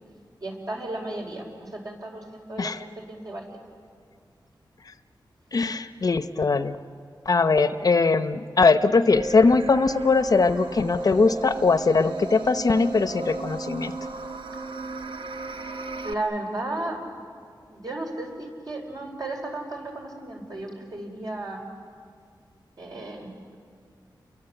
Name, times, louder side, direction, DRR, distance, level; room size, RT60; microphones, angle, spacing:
voice 1, 0.4-3.4 16.0-17.0 17.7-21.6 22.8-23.6, right 2 dB, 50° right, 1 dB, 5.0 m, -34 dB
voice 2, 5.5-6.8 7.3-13.9, left 4 dB, 50° left, 11 dB, 0.8 m, -21 dB
sound 1, 9.1-16.1, right 2 dB, 85° right, 1.3 m, -34 dB
30.0 x 23.0 x 8.0 m, 2.1 s
wide cardioid pair, 120°, 8 cm